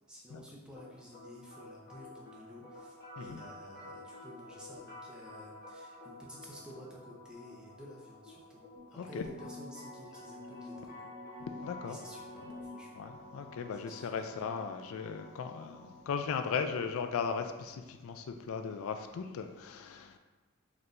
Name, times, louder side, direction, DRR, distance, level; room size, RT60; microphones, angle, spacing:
voice 1, 0.1-8.6 8.9-11.1 11.8-13.2 13.9-14.4, equal, 5° right, -4 dB, 0.6 m, -52 dB
sound 1, 0.8-16.8, left 2 dB, 50° left, 1.1 m, -50 dB
voice 2, 11.6-12.0 13.0-20.2, left 6 dB, 65° left, 7 dB, 0.3 m, -37 dB
4.4 x 3.1 x 2.6 m, 1.2 s
head